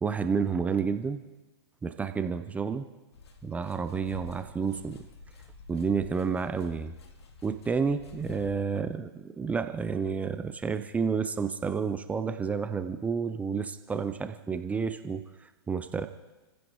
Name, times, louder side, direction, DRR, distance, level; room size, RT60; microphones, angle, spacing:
voice 1, 0.0-1.2 1.8-2.9 3.4-5.0 5.7-6.9 7.4-16.1, right 5 dB, 10° right, 9 dB, 0.7 m, -30 dB
sound 1, 3.1-8.5, left 3 dB, 75° left, 2.1 m, -49 dB
29.5 x 15.5 x 3.1 m, 1.1 s
hypercardioid pair, 130°, 14 cm